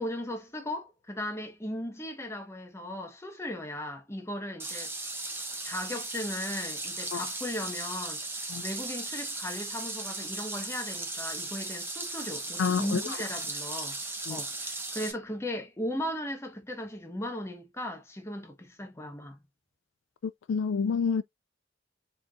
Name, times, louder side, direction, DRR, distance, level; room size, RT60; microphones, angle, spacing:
voice 1, 0.0-4.9 5.6-8.2 8.6-14.0 14.3-19.4, left 1 dB, 15° left, 1.1 m, -37 dB
sound 1, 4.6-15.1, right 2 dB, 10° right, 1.0 m, -37 dB
voice 2, 12.6-13.0 14.3-14.4 20.5-21.2, left 6 dB, 80° left, 0.4 m, -28 dB
4.4 x 3.9 x 2.4 m
head